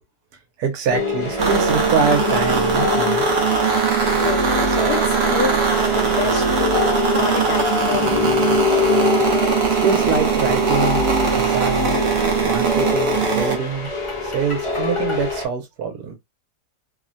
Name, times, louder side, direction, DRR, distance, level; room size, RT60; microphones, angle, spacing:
voice 1, 0.6-3.2 9.8-12.0 12.4-13.9 14.2-16.1, right 5 dB, 75° right, 1.2 m, -24 dB
sound 1, 0.9-15.5, left 5 dB, 35° left, 0.5 m, -25 dB
sound 2, 1.4-13.6, right 5 dB, 60° right, 0.7 m, -20 dB
voice 2, 4.2-8.3, left 7 dB, 80° left, 1.2 m, -28 dB
3.0 x 2.1 x 2.5 m
omnidirectional pair, 1.7 m